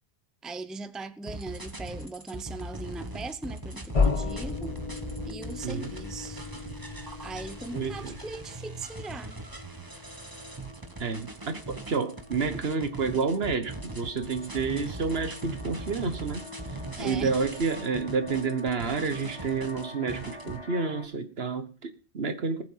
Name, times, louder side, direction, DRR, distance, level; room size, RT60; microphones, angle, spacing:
voice 1, 0.4-4.8 5.2-6.4 7.2-9.4 17.0-17.3, right 3 dB, ahead, 0.6 m, -39 dB
sound 1, 1.3-20.6, right 1 dB, 20° right, 1.4 m, -40 dB
sound 2, 3.7-3.9 4.2-4.5 4.7-21.0, left 3 dB, 70° left, 4.1 m, -49 dB
sound 3, 3.9-8.6, left 4 dB, 35° left, 1.0 m, -32 dB
voice 2, 7.7-8.2 11.0-16.4 17.0-22.6, right 5 dB, 75° right, 1.6 m, -30 dB
19.5 x 7.3 x 5.6 m
omnidirectional pair, 1.1 m